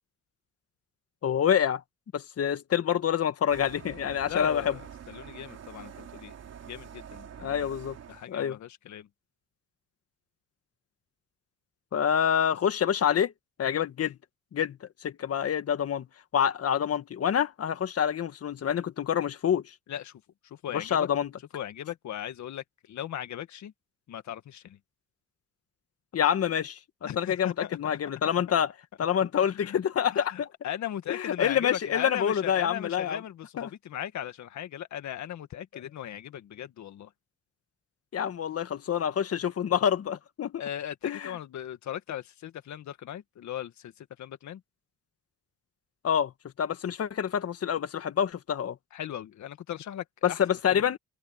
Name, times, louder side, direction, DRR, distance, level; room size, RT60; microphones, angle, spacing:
voice 1, 1.2-1.8 2.1-4.6 7.4-8.0 8.3-8.6 11.9-13.3 13.6-14.2 14.5-16.1 16.3-19.7 20.7-21.3 26.1-26.8 27.2-28.7 29.0-30.5 31.1-33.2 33.6-33.7 38.1-40.6 41.0-41.3 46.0-46.3 46.6-48.8 50.2-51.0, left 8 dB, 50° left, 1.5 m, -27 dB
sound 1, 3.5-8.3, right 8 dB, 55° right, 3.4 m, -46 dB
voice 2, 4.3-6.3 6.7-7.7 8.1-9.1 19.9-21.1 21.5-23.7 24.1-24.8 27.0-27.8 28.5-28.6 29.4-29.8 30.1-37.1 40.6-44.6 48.9-50.9, left 10 dB, 70° left, 1.9 m, -38 dB
cardioid pair, 90°, 30 cm